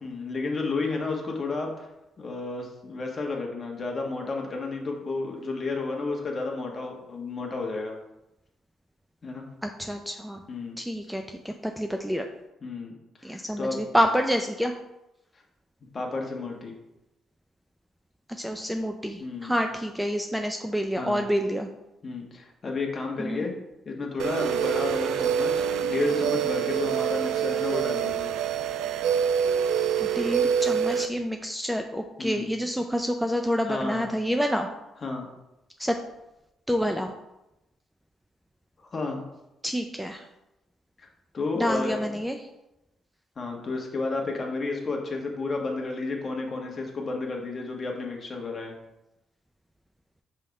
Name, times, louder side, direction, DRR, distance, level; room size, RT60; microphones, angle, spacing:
voice 1, 0.0-1.9 2.2-8.0 9.2-9.4 10.5-10.8 12.6-12.9 13.2-13.8 15.9-16.7 19.2-19.5 21.0-21.3 22.0-23.5 23.8-28.3 32.2-32.5 33.6-34.1 35.0-35.3 38.9-39.2 41.0-41.1 41.3-42.2 43.4-48.7, left 3 dB, 40° left, 1 dB, 1.4 m, -32 dB
voice 2, 9.6-10.4 10.8-12.2 13.2-14.7 18.3-21.7 23.2-23.4 30.0-34.7 35.8-36.0 36.7-37.1 39.6-40.2 41.5-42.4, equal, ahead, 4 dB, 0.4 m, -28 dB
sound 1, 24.2-31.1, right 8 dB, 85° right, 0.3 m, -26 dB
5.5 x 3.5 x 5.2 m, 0.93 s
cardioid pair, 90°, 0 cm